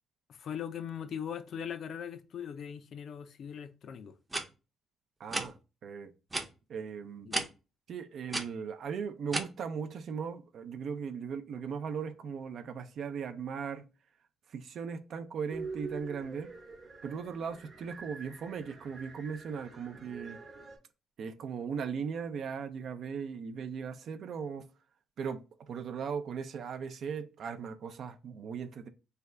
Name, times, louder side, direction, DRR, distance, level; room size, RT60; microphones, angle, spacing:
voice 1, 0.3-4.2 7.3-7.4, left 8 dB, 60° left, 0.4 m, -40 dB
sound 1, 4.3-4.4 5.3-5.5 6.3-6.5 7.3-7.5 8.3-8.4 9.3-9.4, right 2 dB, 15° right, 0.6 m, -32 dB
voice 2, 5.2-5.6 5.8-6.1 6.7-7.5 7.9-13.8 14.5-16.5 17.0-20.4 21.2-24.6 25.2-25.4 25.7-28.9, right 6 dB, 65° right, 0.4 m, -38 dB
sound 2, 15.5-20.8, right 4 dB, 45° right, 0.9 m, -46 dB
3.3 x 2.3 x 3.7 m
cardioid pair, 90°, 0 cm